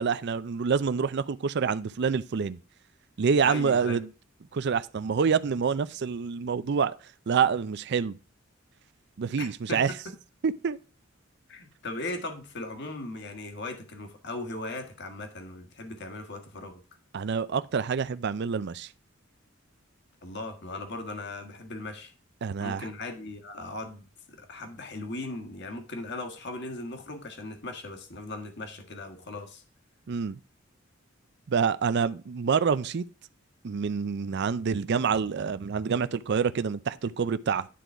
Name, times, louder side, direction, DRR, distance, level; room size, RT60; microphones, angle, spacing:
voice 1, 0.0-2.6 3.2-4.1 4.5-6.9 7.3-8.2 9.2-9.9 10.4-10.8 17.1-18.9 22.4-22.9 30.1-30.3 31.5-33.0 33.6-37.7, right 6 dB, 60° right, 0.4 m, -27 dB
voice 2, 3.4-4.0 9.4-9.9 11.5-16.8 20.2-22.1 22.6-29.6, left 2 dB, 60° left, 1.6 m, -38 dB
10.0 x 3.9 x 4.5 m
head